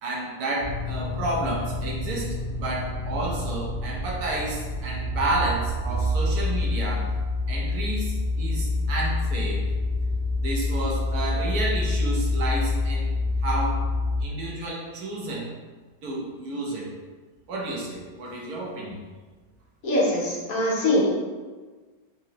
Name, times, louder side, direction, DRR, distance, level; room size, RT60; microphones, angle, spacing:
voice 1, 0.0-7.1 7.5-9.6 10.4-13.1 13.4-13.8 14.2-15.5 16.0-16.9 17.5-19.0, right 2 dB, 70° right, -3 dB, 1.2 m, -31 dB
sound 1, 0.6-14.2, left 2 dB, 85° left, 0.3 m, -27 dB
voice 2, 19.8-21.1, left 1 dB, 65° left, -5 dB, 1.2 m, -22 dB
3.6 x 3.0 x 2.9 m, 1.4 s
omnidirectional pair, 1.7 m